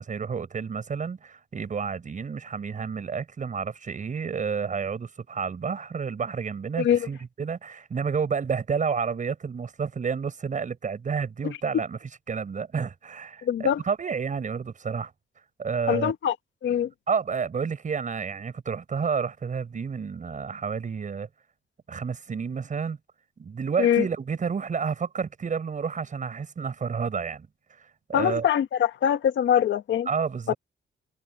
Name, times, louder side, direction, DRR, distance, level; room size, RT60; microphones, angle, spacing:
voice 1, 0.0-15.1 15.6-16.1 17.1-21.3 21.9-23.0 23.4-28.5 30.1-30.5, right 6 dB, 40° right, 6.0 m, -30 dB
voice 2, 6.8-7.1 11.4-11.6 13.4-13.8 15.9-16.3 16.6-16.9 23.8-24.0 28.1-30.1 30.5-30.6, left 9 dB, 70° left, 1.8 m, -23 dB
cardioid pair, 125°, 20 cm